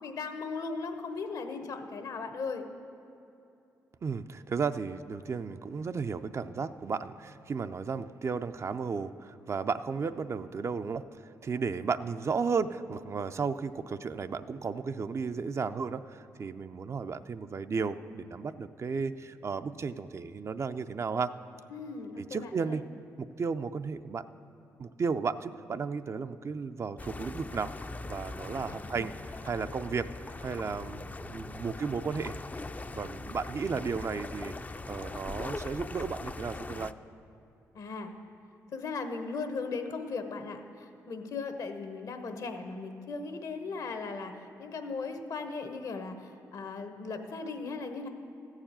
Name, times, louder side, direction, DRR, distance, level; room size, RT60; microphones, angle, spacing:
voice 1, 0.0-2.7 21.7-22.8 28.7-29.1 37.7-38.1 38.7-48.1, left 4 dB, 70° left, 7 dB, 1.1 m, -37 dB
voice 2, 4.0-21.3 22.2-22.9 23.2-24.3 24.8-27.7 28.0-29.1 29.4-30.1 30.4-32.4 32.9-34.5 34.9-36.9, right 5 dB, 45° right, 11 dB, 0.4 m, -34 dB
sound 1, 27.0-36.9, left 3 dB, 25° left, 0.4 m, -41 dB
14.5 x 4.8 x 8.8 m, 2.7 s
supercardioid pair, 60°, 7 cm